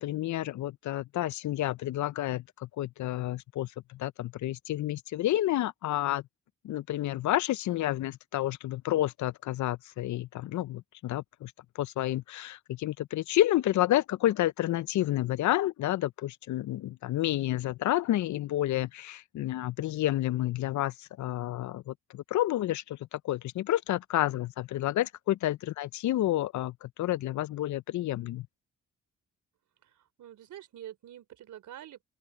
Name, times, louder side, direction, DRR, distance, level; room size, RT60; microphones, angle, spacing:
voice 1, 0.0-6.2 6.6-28.4, left 14 dB, 70° left, 0.6 m, -30 dB
voice 2, 29.8-32.0, right 11 dB, 75° right, 3.7 m, -47 dB
open air
supercardioid pair, 50°, 30 cm